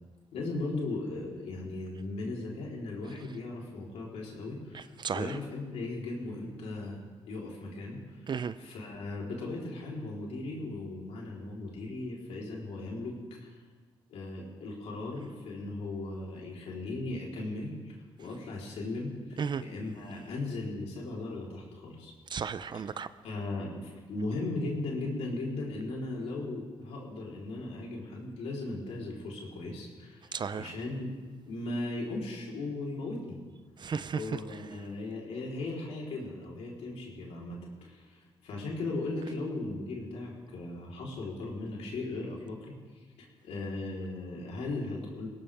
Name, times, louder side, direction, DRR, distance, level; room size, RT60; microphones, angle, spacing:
voice 1, 0.3-7.0 7.3-8.2 8.6-13.1 13.4-13.6 14.1-22.1 23.2-31.1 31.4-33.4 34.1-45.3, left 2 dB, 85° left, 3.9 m, -37 dB
voice 2, 4.7-5.3 8.3-8.5 19.4-19.6 22.3-23.1 30.3-30.7 33.8-34.2, right 6 dB, 45° right, 0.6 m, -34 dB
21.0 x 18.0 x 3.6 m
cardioid pair, 90°, 10 cm